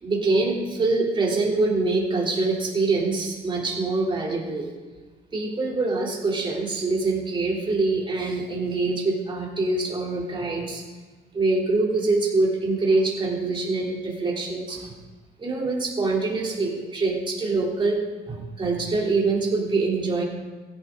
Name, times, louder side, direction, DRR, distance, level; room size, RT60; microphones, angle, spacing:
voice 1, 0.0-4.7 5.3-10.8 11.3-14.9 15.4-20.2, right 3 dB, 30° right, -2 dB, 3.4 m, -24 dB
16.0 x 9.6 x 3.9 m, 1.3 s
cardioid pair, 110°, 17 cm